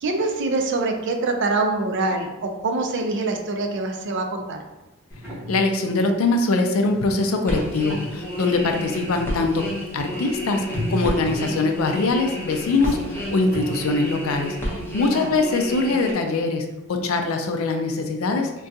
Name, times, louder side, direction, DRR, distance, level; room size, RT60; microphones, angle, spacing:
voice 1, 0.0-4.6 15.1-15.3, right 3 dB, 55° right, 4 dB, 0.4 m, -24 dB
sound 1, 5.1-13.6, right 1 dB, 5° right, 1.2 m, -36 dB
voice 2, 5.5-9.7 9.9-14.6 14.9-18.5, left 3 dB, 75° left, 5 dB, 0.4 m, -22 dB
sound 2, 7.4-16.1, equal, 10° left, 0.7 m, -31 dB
3.6 x 2.3 x 2.6 m, 0.98 s
head